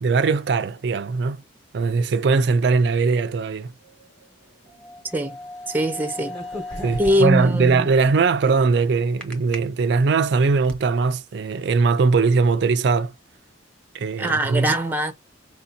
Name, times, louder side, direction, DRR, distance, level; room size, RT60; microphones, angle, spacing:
voice 1, 0.0-1.4 1.7-3.7 6.8-13.1 13.9-14.7, right 4 dB, 60° right, 0.4 m, -20 dB
sound 1, 3.8-9.7, left 2 dB, 80° left, 1.8 m, -40 dB
voice 2, 5.7-6.3 7.0-7.9 14.2-15.1, right 1 dB, 10° right, 0.6 m, -22 dB
sound 2, 6.3-7.5 9.2-9.6 10.2-10.8, equal, 5° left, 1.1 m, -35 dB
5.0 x 2.7 x 4.0 m
head